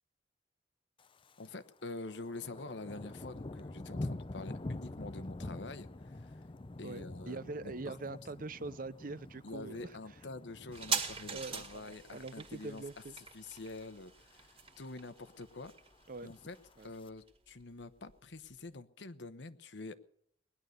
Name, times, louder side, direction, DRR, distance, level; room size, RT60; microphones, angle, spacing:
Thunder, 1.0-1.5 1.8-12.2 12.6-12.9 13.4-13.8 14.1-14.2 14.3-14.4 14.8-15.4 16.2-17.1, left 2 dB, 30° left, 0.6 m, -46 dB
voice 1, 1.4-6.3 6.8-7.7 8.1-8.2 9.4-12.8 13.3-15.7 16.2-16.6 16.8-19.9, left 2 dB, 80° left, 12 dB, 1.1 m, -46 dB
voice 2, 6.8-10.0 11.3-13.2 16.1-16.3 16.8-16.9, right 3 dB, 50° right, 17 dB, 0.7 m, -43 dB
sound 1, 10.7-17.8 18.1-18.2, right 5 dB, 30° right, 1.9 m, -42 dB
20.0 x 11.0 x 6.6 m, 0.69 s
head